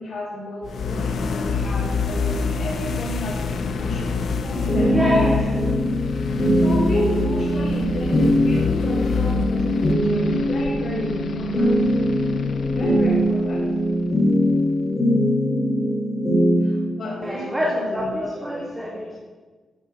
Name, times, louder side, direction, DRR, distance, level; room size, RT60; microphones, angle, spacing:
voice 1, 0.0-5.0 5.4-5.5 5.9-6.0 6.5-11.7 12.7-13.7 16.6-18.6, left 1 dB, 40° left, -5 dB, 4.7 m, -32 dB
sound 1, 0.6-14.5, left 4 dB, 55° left, 0.9 m, -28 dB
sound 2, 4.5-16.8, equal, 20° left, 4.6 m, -21 dB
voice 2, 4.9-5.6 17.2-19.2, left 1 dB, 10° right, -3 dB, 2.0 m, -25 dB
14.0 x 7.4 x 7.4 m, 1.3 s
wide cardioid pair, 160°, 0 cm